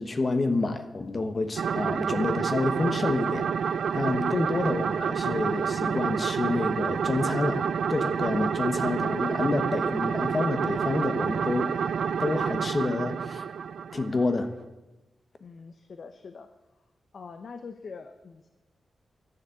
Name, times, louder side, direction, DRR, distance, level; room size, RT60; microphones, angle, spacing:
voice 1, 0.0-11.7 12.2-13.4 13.9-14.5, left 3 dB, 30° left, 8 dB, 1.1 m, -28 dB
sound 1, 1.6-14.4, right 7 dB, 70° right, 0.4 m, -28 dB
voice 2, 15.4-16.5 17.1-18.5, left 5 dB, 50° left, 8 dB, 0.8 m, -43 dB
12.0 x 11.0 x 8.3 m, 1.1 s
wide cardioid pair, 170°, 0 cm